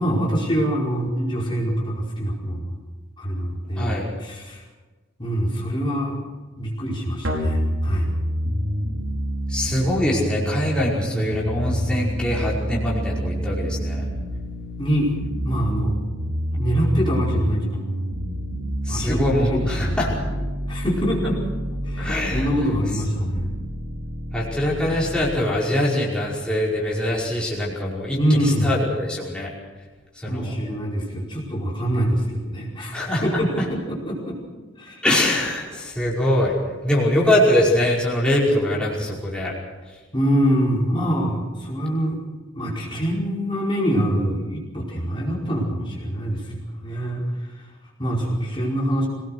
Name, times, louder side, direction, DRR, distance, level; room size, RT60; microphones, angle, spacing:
voice 1, 0.0-2.8 3.2-3.9 4.2-4.6 5.2-6.2 6.6-8.1 14.8-15.1 15.4-16.0 16.5-18.0 18.9-20.0 20.7-21.4 21.8-23.5 28.2-28.7 30.2-34.4 34.8-35.0 40.1-42.2 42.5-47.7 48.0-49.1, equal, 25° left, -4 dB, 4.9 m, -24 dB
voice 2, 3.8-4.1 9.5-14.1 18.8-20.1 22.0-22.5 24.3-29.5 30.2-30.5 32.9-33.4 35.0-36.5 36.8-39.5, left 1 dB, 5° left, -5 dB, 5.3 m, -23 dB
sound 1, 7.2-25.2, equal, 80° right, 5.6 m, -28 dB
25.0 x 19.0 x 6.5 m, 1.3 s
head